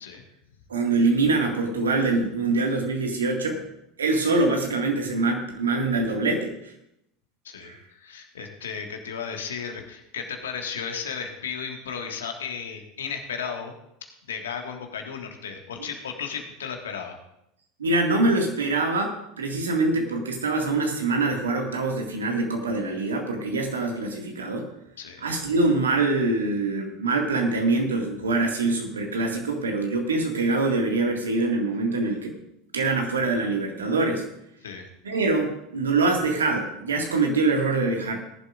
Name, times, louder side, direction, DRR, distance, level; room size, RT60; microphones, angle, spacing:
voice 1, 0.7-3.6 4.0-6.7 7.6-7.8 17.8-24.7 25.2-32.3 32.7-34.2 35.0-38.2, right 3 dB, 80° right, 1 dB, 2.0 m, -24 dB
voice 2, 7.4-13.7 14.3-17.2 25.0-25.2 34.6-34.9, left 6 dB, 75° left, 3 dB, 1.7 m, -34 dB
19.0 x 11.0 x 2.5 m, 0.79 s
figure-of-eight pair, 80°, 0 cm